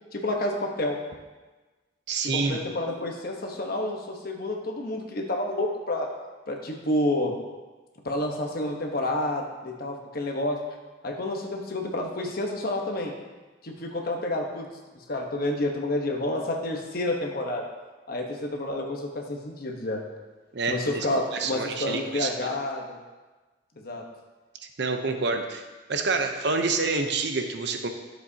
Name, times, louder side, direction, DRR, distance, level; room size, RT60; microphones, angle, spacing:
voice 1, 0.1-1.0 2.2-6.1 6.5-7.4 8.0-10.6 11.0-13.1 13.6-14.7 15.1-17.7 18.1-20.0 20.7-23.0 23.8-24.0, left 1 dB, 55° left, 2 dB, 1.1 m, -29 dB
voice 2, 2.1-2.6 20.5-21.1 21.3-22.3 24.8-25.6 25.9-27.9, right 4 dB, 65° right, 5 dB, 0.7 m, -27 dB
11.5 x 7.4 x 2.8 m, 1.3 s
head